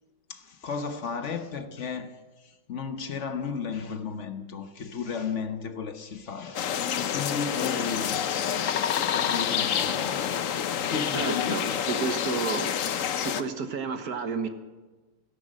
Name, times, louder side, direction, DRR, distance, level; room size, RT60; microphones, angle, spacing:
voice 1, 0.3-2.1 2.7-8.3 9.1-11.8, left 5 dB, 50° left, 0.9 m, -34 dB
sound 1, 6.5-13.4, left 9 dB, 85° left, 0.7 m, -28 dB
voice 2, 11.1-12.7 13.1-14.5, right 5 dB, 50° right, 1.4 m, -31 dB
16.5 x 13.0 x 6.5 m
omnidirectional pair, 2.3 m